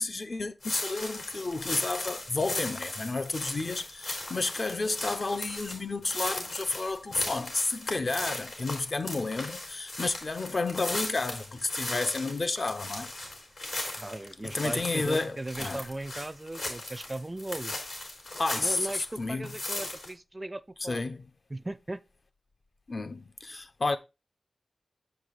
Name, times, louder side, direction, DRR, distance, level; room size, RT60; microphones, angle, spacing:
voice 1, 0.0-13.1 14.4-15.8 18.4-19.5 20.8-21.2 22.9-24.0, left 3 dB, 45° left, 0.6 m, -31 dB
sound 1, 0.6-19.1 19.4-20.1, left 2 dB, 75° left, 3.2 m, -37 dB
voice 2, 14.0-17.7 18.6-21.0 21.5-22.0, right 2 dB, 20° right, 0.4 m, -37 dB
7.3 x 4.9 x 3.9 m
wide cardioid pair, 95°, 0 cm